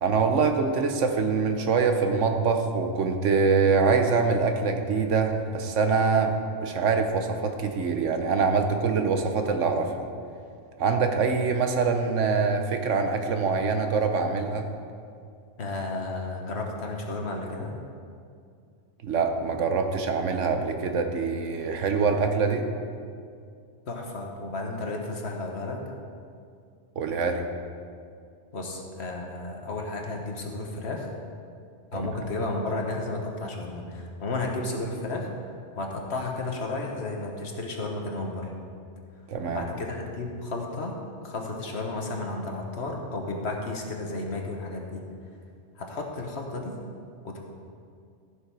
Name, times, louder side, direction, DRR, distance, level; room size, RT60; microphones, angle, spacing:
voice 1, 0.0-6.3 6.6-9.9 10.8-14.7 19.0-22.6 27.0-27.5 31.9-32.1 39.3-39.6, right 5 dB, 75° right, 6 dB, 1.2 m, -24 dB
voice 2, 15.6-17.7 23.9-25.8 28.5-31.1 31.9-35.3 35.7-38.5 39.5-41.0 41.2-45.0 45.8-46.8 47.2-47.4, left 2 dB, 60° left, 1 dB, 1.5 m, -33 dB
14.5 x 6.6 x 4.8 m, 2.3 s
omnidirectional pair, 1.3 m